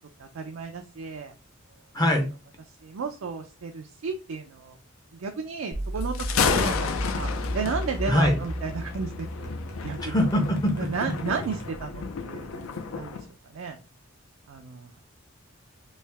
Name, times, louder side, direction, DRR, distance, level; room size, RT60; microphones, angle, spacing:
voice 1, 0.2-1.3 2.8-4.8 5.2-10.2 10.7-13.3 13.5-13.8 14.5-15.0, right 5 dB, 80° right, 4 dB, 0.4 m, -34 dB
voice 2, 1.9-2.3 8.1-8.3 10.0-10.7, left 1 dB, 20° left, 4 dB, 0.5 m, -22 dB
sound 1, 5.7-12.1, equal, 50° left, 1.0 m, -34 dB
Thunder, 6.0-13.2, left 5 dB, 80° left, 0.5 m, -31 dB
3.3 x 2.7 x 3.3 m, 0.32 s
head